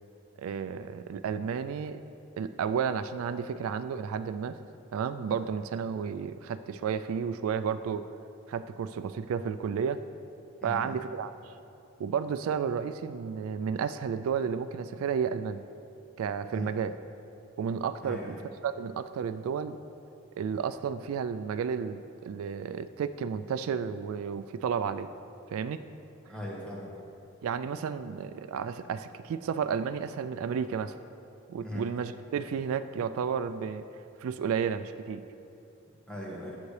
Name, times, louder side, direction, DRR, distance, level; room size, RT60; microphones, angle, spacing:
voice 1, 0.4-2.0 2.4-4.6 4.9-8.1 8.5-10.0 10.6-11.5 12.0-15.6 16.2-17.0 17.6-18.4 18.6-19.8 20.4-25.1 25.5-25.8 27.4-31.0 31.5-33.9 34.2-35.2, right 7 dB, 80° right, 11 dB, 0.3 m, -32 dB
voice 2, 10.6-11.0 16.5-16.7 18.0-18.3 26.3-26.9 31.6-31.8 36.1-36.6, left 1 dB, 5° left, -4 dB, 1.4 m, -39 dB
10.5 x 8.1 x 3.3 m, 2.8 s
head